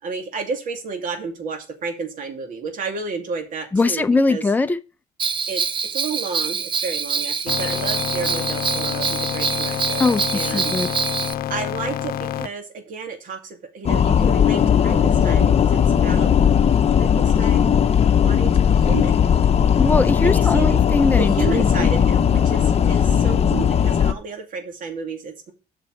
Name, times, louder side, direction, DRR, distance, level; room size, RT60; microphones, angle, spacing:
voice 1, 0.0-4.4 5.5-5.6 5.9-10.7 11.5-16.3 17.0-17.8 18.2-19.2 20.2-20.7 21.2-25.5, right 5 dB, 55° right, 2.5 m, -31 dB
voice 2, 3.7-4.8 10.0-10.9 19.8-21.9, left 3 dB, 10° left, 0.6 m, -21 dB
Bell, 5.2-11.3, right 5 dB, 30° right, 0.7 m, -25 dB
sound 1, 7.5-12.5, left 12 dB, 70° left, 0.8 m, -28 dB
sound 2, 13.8-24.1, left 8 dB, 40° left, 0.9 m, -17 dB
8.1 x 5.8 x 5.1 m
cardioid pair, 100°, 16 cm